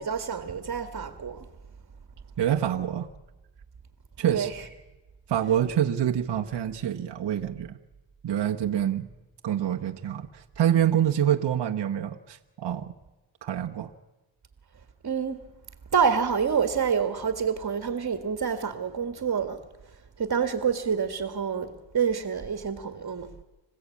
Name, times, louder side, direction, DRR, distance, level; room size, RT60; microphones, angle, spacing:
voice 1, 0.0-1.5 4.3-4.5 15.0-15.4 15.9-19.6 20.2-23.4, right 6 dB, 40° right, 1.8 m, -27 dB
voice 2, 2.4-3.1 4.2-4.5 5.3-7.8 8.2-9.1 9.4-12.9 13.4-13.9, right 10 dB, 55° right, 1.2 m, -26 dB
27.0 x 16.0 x 8.5 m
cardioid pair, 90°, 49 cm